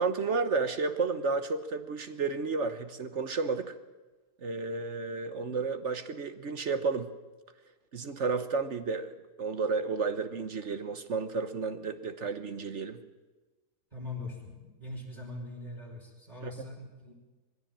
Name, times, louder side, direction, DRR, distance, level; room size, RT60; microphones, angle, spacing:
voice 1, 0.0-3.7 4.4-7.1 7.9-13.0, right 4 dB, 50° right, 10 dB, 1.2 m, -32 dB
voice 2, 13.9-14.5 14.8-17.1, left 2 dB, 20° right, -6 dB, 3.9 m, -41 dB
21.0 x 15.5 x 8.9 m, 1.2 s
omnidirectional pair, 1.8 m